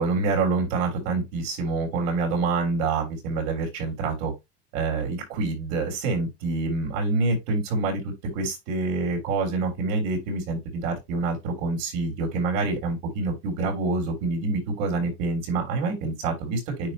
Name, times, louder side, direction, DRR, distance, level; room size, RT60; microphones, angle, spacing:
voice 1, 0.0-4.3 4.7-16.9, right 3 dB, 65° right, 3.5 m, -26 dB
9.9 x 3.4 x 2.9 m
cardioid pair, 170°, 32 cm